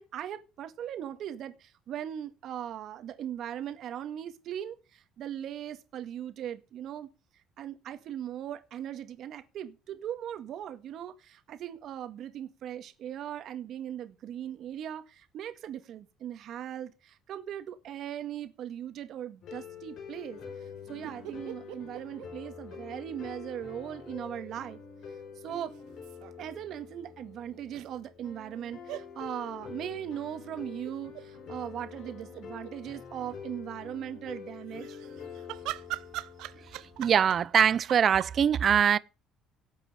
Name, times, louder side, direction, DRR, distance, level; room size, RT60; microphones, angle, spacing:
voice 1, 0.0-24.8 25.4-25.7 26.4-35.0, right 10 dB, 50° right, 1.9 m, -39 dB
sound 1, 19.4-37.4, left 6 dB, 50° left, 5.1 m, -46 dB
sound 2, 21.0-23.3 23.5-23.6 25.7-26.5 27.7-27.9 28.9-29.1 30.8-31.2 31.7-31.8 32.0-32.7 34.7-38.3, right 17 dB, 75° right, 0.8 m, -41 dB
voice 2, 37.0-39.0, right 8 dB, 35° right, 0.7 m, -23 dB
18.0 x 8.4 x 5.1 m
cardioid pair, 155°, 0 cm